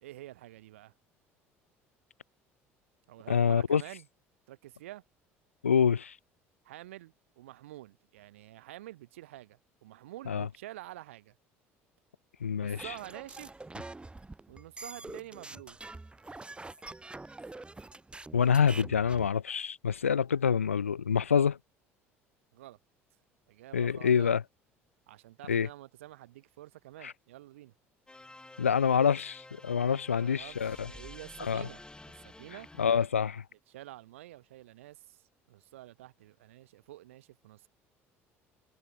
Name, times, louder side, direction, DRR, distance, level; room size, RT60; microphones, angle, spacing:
voice 1, 0.0-0.9 3.1-4.1 4.5-5.0 6.6-11.3 12.5-13.6 14.5-15.8 22.5-22.8 23.5-24.4 25.1-27.7 30.1-31.8 32.2-32.7 33.7-35.2 35.5-37.7, right 15 dB, 75° right, 2.0 m, -48 dB
voice 2, 3.3-3.8 5.6-6.2 10.3-10.5 12.4-12.9 18.3-21.6 23.7-24.4 25.5-25.7 27.0-27.1 28.6-30.9 31.4-31.7 32.8-33.4, left 7 dB, 90° left, 0.4 m, -26 dB
sound 1, 12.8-19.3, right 2 dB, 15° right, 3.4 m, -45 dB
sound 2, 28.1-33.1, left 2 dB, 10° left, 5.6 m, -51 dB
figure-of-eight pair, 60°, 7 cm